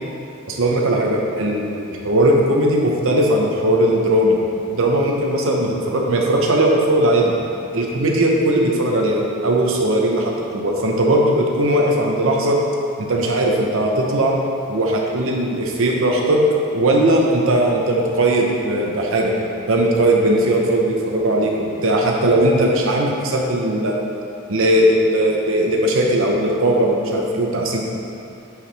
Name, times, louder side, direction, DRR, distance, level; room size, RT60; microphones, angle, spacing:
voice 1, 0.5-4.4 4.7-7.4 7.7-12.6 13.0-14.4 14.7-16.4 16.7-19.3 19.7-23.9 24.5-27.8, right 1 dB, 65° right, 0 dB, 0.9 m, -18 dB
8.3 x 4.8 x 3.4 m, 2.7 s
head